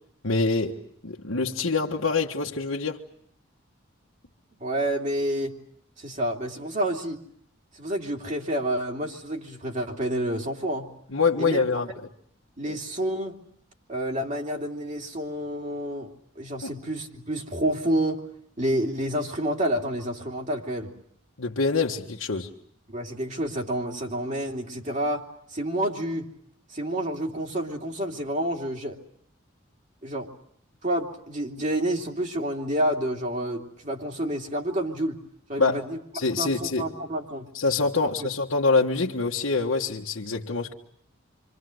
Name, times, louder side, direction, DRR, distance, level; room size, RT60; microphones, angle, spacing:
voice 1, 0.2-3.0 11.1-11.9 12.6-12.8 16.6-16.7 21.4-22.5 35.6-35.8 36.1-36.9 37.5-40.7, left 4 dB, 75° left, 1.6 m, -25 dB
voice 2, 4.6-5.6 6.0-7.2 7.7-10.9 11.4-11.6 12.6-13.4 13.9-16.1 16.3-18.2 18.6-20.9 22.9-25.3 25.5-26.3 26.7-29.0 30.0-30.3 30.8-35.2 35.5-36.0 36.4-37.5 38.0-38.1, right 1 dB, 35° right, 3.0 m, -29 dB
28.5 x 25.0 x 7.9 m
head